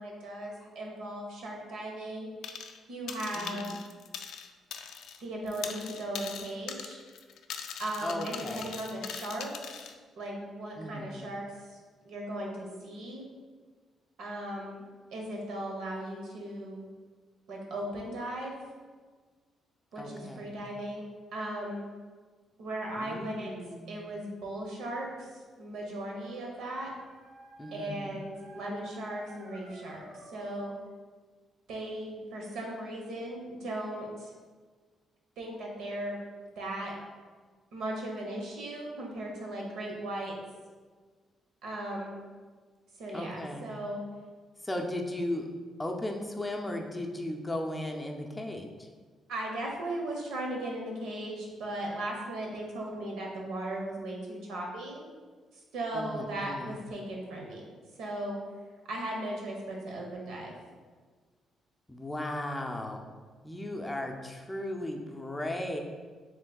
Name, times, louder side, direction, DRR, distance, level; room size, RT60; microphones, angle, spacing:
voice 1, 0.0-2.3 2.9-3.7 5.2-7.0 7.8-9.9 10.1-11.8 12.0-13.2 14.2-14.8 15.1-16.8 17.5-18.6 19.9-21.1 21.3-21.9 22.6-23.6 23.9-26.9 27.7-30.7 31.7-34.3 35.4-36.2 36.6-36.9 37.7-40.3 41.6-42.2 43.0-44.0 49.3-55.0 55.7-57.6 58.0-58.4 58.9-60.6, right 1 dB, 85° right, -1 dB, 1.1 m, -37 dB
sound 1, 2.4-2.8 3.1-5.2 5.5-9.9, left 7 dB, 80° left, 0.3 m, -41 dB
voice 2, 3.3-3.8 8.0-8.7 10.8-11.1 20.0-20.7 23.0-24.0 27.6-28.2 43.1-43.8 44.6-45.5 45.8-48.9 55.9-56.7 61.9-63.0 63.4-65.8, left 1 dB, 15° left, 2 dB, 0.5 m, -36 dB
Dog, 25.6-30.7, right 1 dB, 55° right, 1.1 m, -53 dB
7.2 x 3.2 x 2.3 m, 1.5 s
cardioid pair, 90°, 0 cm